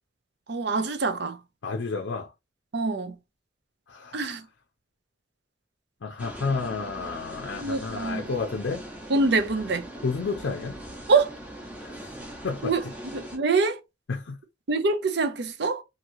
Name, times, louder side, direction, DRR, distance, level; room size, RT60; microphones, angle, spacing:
voice 1, 0.5-1.4 2.7-3.2 4.1-4.5 7.5-8.4 9.1-9.9 11.1-11.4 12.6-12.8 13.1-13.8 14.7-15.8, right 3 dB, 60° right, 0.6 m, -25 dB
voice 2, 1.6-2.3 3.9-4.2 6.0-8.8 10.0-10.8 11.8-12.0 12.4-12.7 14.1-14.4, left 4 dB, 80° left, 0.5 m, -31 dB
sound 1, 6.2-13.4, equal, 10° right, 0.8 m, -41 dB
2.9 x 2.7 x 2.7 m
head